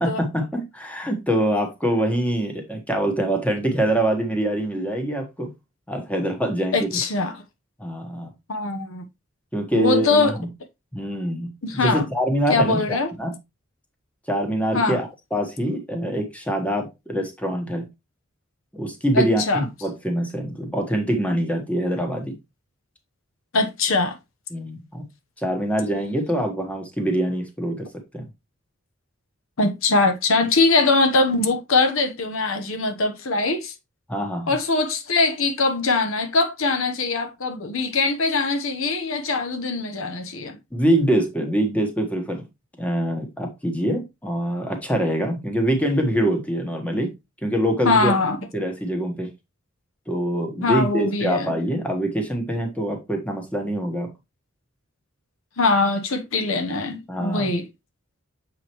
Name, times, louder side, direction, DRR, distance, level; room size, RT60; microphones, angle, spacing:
voice 1, 0.0-5.5 5.9-6.9 7.8-8.3 9.5-10.5 10.9-13.4 14.3-17.9 18.7-22.4 24.5-25.0 25.4-27.9 28.1-28.3 34.1-34.6 40.7-42.4 42.8-47.1 47.4-48.1 48.5-49.3 50.1-54.1 57.1-57.5, right 1 dB, 5° left, 1.3 m, -24 dB
voice 2, 6.7-7.3 8.5-9.0 9.7-10.4 11.6-12.0 12.5-13.1 14.7-15.0 19.1-19.6 23.5-24.2 29.6-33.7 34.5-40.6 47.8-48.4 50.6-51.5 55.6-57.6, left 3 dB, 80° left, 1.0 m, -22 dB
7.2 x 4.9 x 3.0 m
head